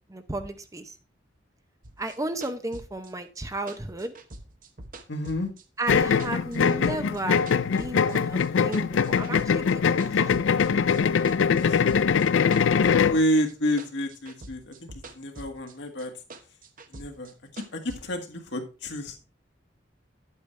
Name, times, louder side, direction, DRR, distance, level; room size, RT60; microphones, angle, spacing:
voice 1, 0.1-0.9 2.0-4.1 5.8-10.7 10.9-11.1, right 2 dB, 15° right, 9 dB, 0.7 m, -34 dB
sound 1, 1.8-5.9 6.2-8.2 8.4-9.7 10.0-13.5 13.8-15.7 16.0-18.0, right 2 dB, 45° right, 1.0 m, -45 dB
voice 2, 5.1-5.5 11.6-11.8 13.1-16.1 16.9-19.2, equal, 65° left, 4 dB, 1.8 m, -29 dB
sound 2, 5.9-13.2, left 6 dB, 85° left, 0.4 m, -22 dB
9.7 x 8.3 x 3.2 m, 0.32 s
head